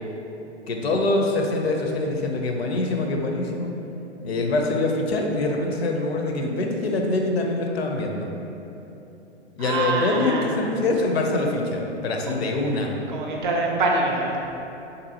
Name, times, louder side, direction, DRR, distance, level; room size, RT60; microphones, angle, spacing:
voice 1, 0.7-3.7 4.2-8.3 9.6-12.9, left 2 dB, 65° left, 1 dB, 0.5 m, -24 dB
voice 2, 9.6-10.6 12.3-12.4 12.7-14.4, right 3 dB, 45° right, -1 dB, 0.5 m, -25 dB
3.6 x 2.6 x 2.7 m, 3.0 s
figure-of-eight pair, 115°, 35 cm